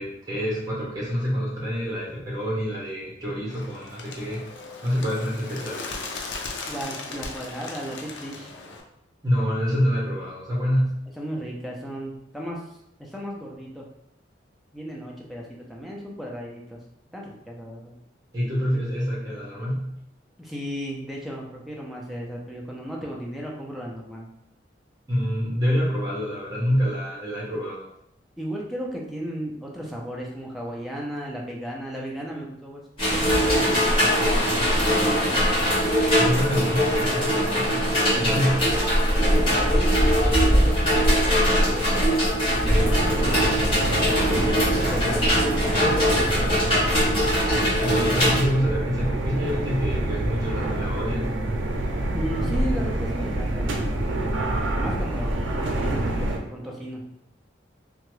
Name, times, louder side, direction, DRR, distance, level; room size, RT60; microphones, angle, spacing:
voice 1, 0.0-4.4 4.8-5.8 9.2-11.0 18.3-19.9 25.1-27.9 36.2-38.7 47.8-51.3, equal, 20° right, -5 dB, 1.0 m, -26 dB
Bird, 3.5-8.8, left 3 dB, 75° left, 0.4 m, -37 dB
voice 2, 6.7-8.5 11.2-13.9 14.7-16.8 17.1-18.0 20.4-24.3 28.4-32.8 33.1-35.6 38.2-38.7 39.2-42.1 42.4-43.2 44.0-47.3 52.1-57.0, equal, ahead, -2 dB, 0.4 m, -35 dB
sound 1, 33.0-48.4, equal, 30° left, 1.4 m, -21 dB
sound 2, 42.6-56.4, right 1 dB, 85° right, 0.5 m, -27 dB
2.8 x 2.2 x 3.1 m, 0.79 s
head